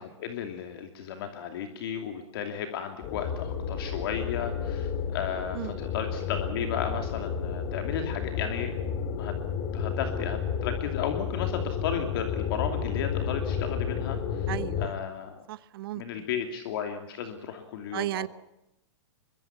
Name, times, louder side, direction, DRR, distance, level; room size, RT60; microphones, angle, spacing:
voice 1, 0.0-8.8 9.2-9.3 9.7-14.5 14.8-15.4 15.9-18.3, left 8 dB, 50° left, 5 dB, 2.8 m, -34 dB
sound 1, 3.0-14.9, left 7 dB, 30° left, 2.9 m, -31 dB
voice 2, 14.5-14.9 15.5-16.2 17.9-18.3, right 14 dB, 50° right, 17 dB, 1.0 m, -34 dB
24.0 x 23.5 x 5.9 m, 0.84 s
hypercardioid pair, 160°, 16 cm